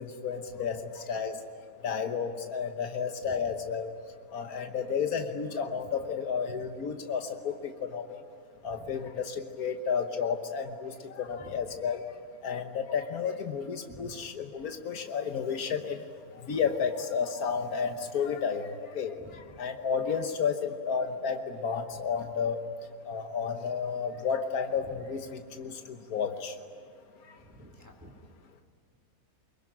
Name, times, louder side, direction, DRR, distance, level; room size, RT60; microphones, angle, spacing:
voice 1, 0.0-1.4 1.8-3.9 4.3-8.2 8.6-12.0 12.4-16.0 16.4-22.6 23.0-26.5, left 6 dB, 90° left, 6 dB, 1.6 m, -32 dB
voice 2, 13.9-14.3 19.2-19.4 27.5-28.1, equal, 10° right, -1 dB, 2.6 m, -50 dB
25.0 x 22.5 x 9.9 m, 2.3 s
omnidirectional pair, 1.5 m